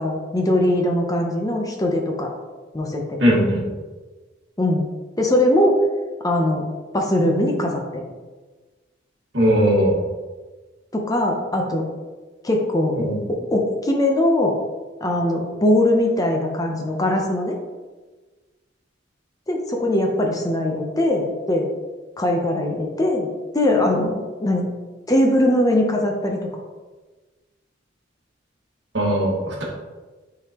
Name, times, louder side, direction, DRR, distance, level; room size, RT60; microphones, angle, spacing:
voice 1, 0.0-2.3 2.7-3.2 4.6-4.9 5.2-5.8 6.2-6.6 6.9-8.1 10.9-11.9 12.4-13.0 13.3-14.5 15.0-17.5 19.5-21.7 22.2-23.3 23.5-24.7 25.1-26.4, left 1 dB, 20° left, 1 dB, 0.6 m, -21 dB
voice 2, 3.2-3.6 9.3-10.0 13.0-13.3 28.9-29.6, equal, 65° right, -3 dB, 1.7 m, -19 dB
9.0 x 3.9 x 2.9 m, 1.3 s
head